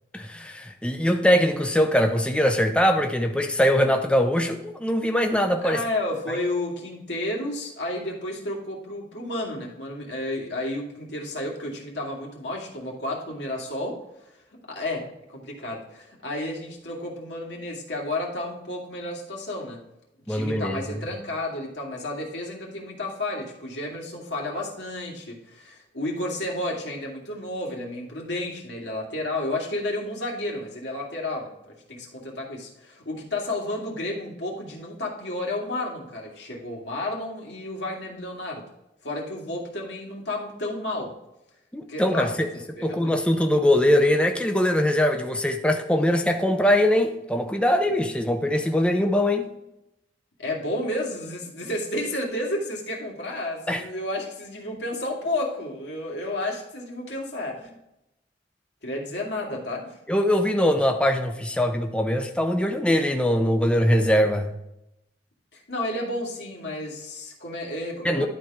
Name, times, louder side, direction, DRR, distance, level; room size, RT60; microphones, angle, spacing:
voice 1, 0.1-5.8 20.3-21.1 41.7-42.5 42.8-49.5 53.7-53.8 60.1-64.5 68.0-68.2, equal, 5° left, 5 dB, 0.6 m, -22 dB
voice 2, 5.6-15.1 15.3-19.8 20.3-38.7 39.0-41.2 41.9-43.1 50.4-57.8 58.8-60.0 65.5-68.3, left 1 dB, 85° left, -1 dB, 2.3 m, -32 dB
11.5 x 4.4 x 3.6 m, 0.87 s
head